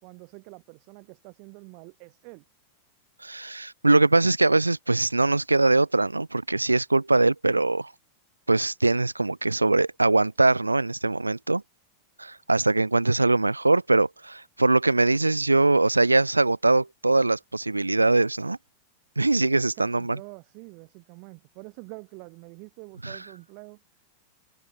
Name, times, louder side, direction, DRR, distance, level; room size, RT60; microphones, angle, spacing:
voice 1, 0.0-2.4 19.8-23.8, right 39 dB, 45° right, 2.2 m, -46 dB
voice 2, 3.2-7.9 8.5-11.6 12.2-18.6 19.2-20.2 23.0-23.2, right 2 dB, 80° right, 0.5 m, -22 dB
figure-of-eight pair, 90°, 0 cm